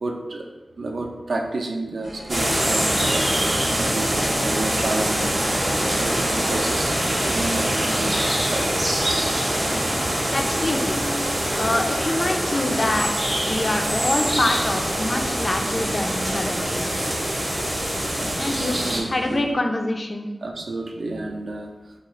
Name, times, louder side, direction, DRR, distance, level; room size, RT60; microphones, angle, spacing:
voice 1, 0.0-0.5 0.8-3.3 3.7-5.3 5.7-8.7 18.2-18.3 18.6-19.5 20.4-21.7, right 2 dB, 85° right, 1 dB, 0.4 m, -31 dB
sound 1, 2.0-19.4, left 1 dB, 80° left, 0.9 m, -41 dB
sound 2, 2.3-19.0, right 1 dB, 35° right, 0.6 m, -24 dB
voice 2, 10.3-11.0 11.6-13.1 13.4-17.0 17.9-18.0 18.4-18.8 19.1-20.3, left 2 dB, 40° left, 4 dB, 0.3 m, -25 dB
2.8 x 2.3 x 3.1 m, 1.1 s
wide cardioid pair, 95°, 0 cm